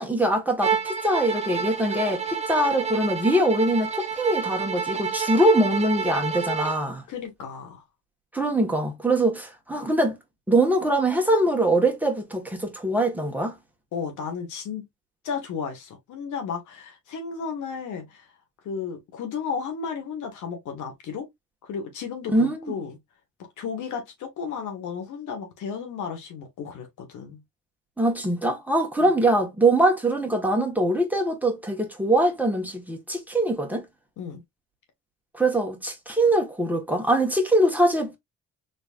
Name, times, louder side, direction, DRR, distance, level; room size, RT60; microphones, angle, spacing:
voice 1, 0.0-7.0 8.3-10.2 10.5-13.6 22.3-22.7 28.0-33.8 35.3-38.2, right 1 dB, 5° right, 1.6 m, -23 dB
Bowed string instrument, 0.6-6.8, right 6 dB, 20° right, 1.2 m, -29 dB
voice 2, 7.1-7.8 13.9-14.9 15.2-18.2 18.6-21.3 21.7-23.0 23.6-27.4 34.2-34.4, left 6 dB, 80° left, 1.7 m, -33 dB
4.1 x 3.2 x 2.5 m
cardioid pair, 90°, 30 cm